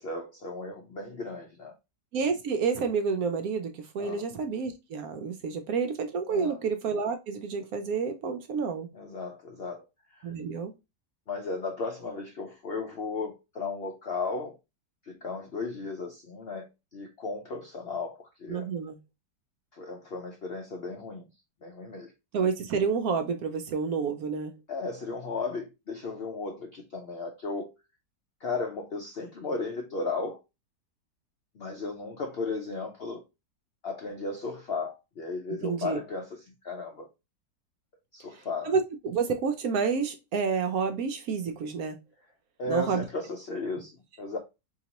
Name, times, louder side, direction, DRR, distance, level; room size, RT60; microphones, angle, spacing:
voice 1, 0.0-1.7 4.0-4.3 6.3-6.6 8.9-9.8 10.1-10.3 11.3-14.6 15.0-18.7 19.7-21.3 21.6-22.1 24.7-27.8 28.4-30.4 31.5-33.2 33.8-37.1 38.1-38.7 42.6-44.4, left 3 dB, 65° left, 0.6 m, -35 dB
voice 2, 2.1-8.9 10.2-10.7 18.5-19.0 22.3-24.6 35.6-36.0 38.7-42.0 42.7-43.0, right 5 dB, 70° right, 0.9 m, -29 dB
3.9 x 2.9 x 2.8 m
omnidirectional pair, 1.9 m